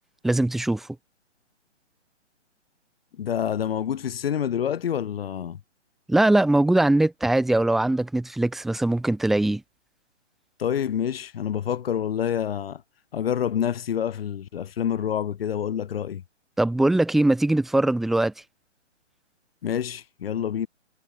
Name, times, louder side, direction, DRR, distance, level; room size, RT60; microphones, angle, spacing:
voice 1, 0.2-0.9 6.1-9.6 16.6-18.3, right 2 dB, ahead, 0.5 m, -21 dB
voice 2, 3.2-5.6 10.6-12.8 13.1-16.2 19.6-20.7, left 9 dB, 50° left, 5.8 m, -27 dB
hypercardioid pair, 145°, 36 cm